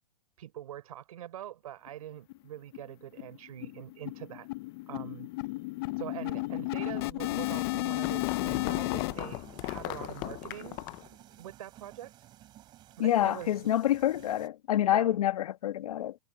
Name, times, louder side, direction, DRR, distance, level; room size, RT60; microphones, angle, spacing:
voice 1, 0.4-4.5 4.9-5.3 6.0-10.8 11.4-12.1 13.0-13.6 14.9-15.2, right 12 dB, 70° right, 4.5 m, -44 dB
sound 1, 1.9-2.0 2.3-2.4 2.7-2.9 3.2-9.1, left 21 dB, 40° left, 0.9 m, -34 dB
sound 2, 7.6-11.1, left 21 dB, 20° left, 0.4 m, -37 dB
sound 3, 9.1-14.5, right 13 dB, 25° right, 3.5 m, -54 dB
voice 2, 13.0-16.2, left 12 dB, 70° left, 1.4 m, -27 dB
supercardioid pair, 165°, 19 cm